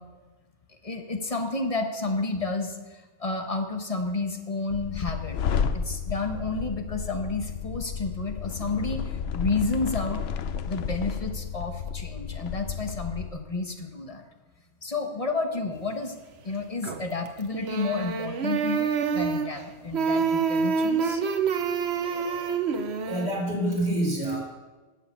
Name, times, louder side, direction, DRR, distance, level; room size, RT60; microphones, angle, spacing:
voice 1, 0.8-5.4 5.7-10.2 10.6-14.2 14.8-16.2 16.4-21.2, left 3 dB, 35° left, 5 dB, 1.1 m, -31 dB
sound 1, 4.7-13.3, left 7 dB, 70° left, 0.9 m, -32 dB
sound 2, 16.8-17.3 17.5-19.6 19.9-23.3, right 6 dB, 75° right, 1.1 m, -27 dB
voice 2, 23.1-24.4, right 1 dB, 45° right, -4 dB, 4.3 m, -26 dB
12.0 x 6.7 x 8.4 m, 1.2 s
omnidirectional pair, 1.1 m